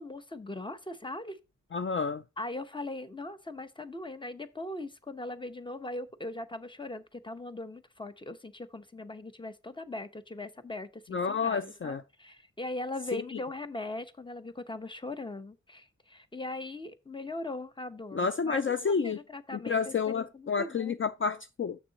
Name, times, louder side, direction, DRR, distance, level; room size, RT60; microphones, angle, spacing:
voice 1, 0.0-1.4 2.4-20.9, left 2 dB, 15° left, 0.9 m, -40 dB
voice 2, 1.7-2.2 11.1-12.0 13.1-13.2 18.1-19.2 19.5-21.8, left 5 dB, 45° left, 0.5 m, -30 dB
6.8 x 6.7 x 4.0 m
wide cardioid pair, 85°, 29 cm